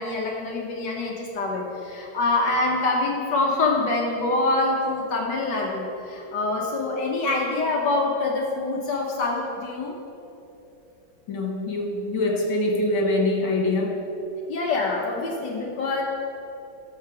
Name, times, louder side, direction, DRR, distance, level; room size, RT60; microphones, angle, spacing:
voice 1, 0.0-9.9 14.5-16.0, left 2 dB, 70° left, -1 dB, 1.6 m, -25 dB
voice 2, 11.3-14.0, left 2 dB, 90° left, 0 dB, 2.3 m, -24 dB
11.5 x 6.7 x 4.7 m, 2.9 s
omnidirectional pair, 2.1 m